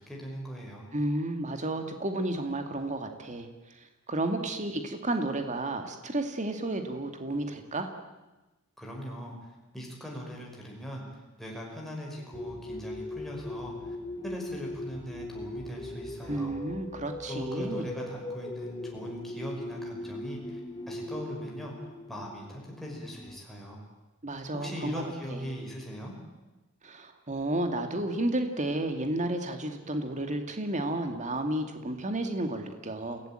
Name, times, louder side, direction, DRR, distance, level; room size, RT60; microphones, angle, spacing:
voice 1, 0.0-0.9 8.8-11.0 11.4-14.0 14.2-16.5 17.3-20.6 20.9-21.7 22.1-23.8 24.5-26.1, equal, ahead, -2 dB, 5.4 m, -40 dB
voice 2, 0.9-7.9 16.3-17.9 24.2-25.6 26.8-33.2, right 1 dB, 35° right, 6 dB, 2.1 m, -32 dB
sound 1, 12.3-23.4, left 1 dB, 20° left, 0.9 m, -40 dB
28.0 x 17.0 x 8.9 m, 1.1 s
head